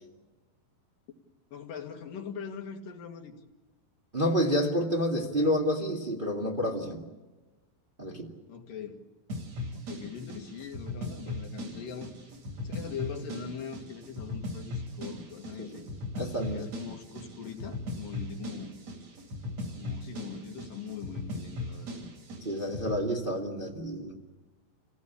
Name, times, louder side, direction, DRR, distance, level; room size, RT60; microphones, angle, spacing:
voice 1, 1.5-3.4 8.5-9.1 9.7-12.2 12.6-15.9 16.5-18.7 19.8-22.0, left 7 dB, 70° left, 3 dB, 3.7 m, -41 dB
voice 2, 4.1-7.0 8.0-8.3 15.6-15.8 16.1-16.7 22.4-24.2, equal, 15° right, -1 dB, 2.0 m, -29 dB
sound 1, 9.3-23.0, left 1 dB, 45° right, 4.2 m, -39 dB
29.0 x 17.5 x 8.5 m, 1.2 s
omnidirectional pair, 4.1 m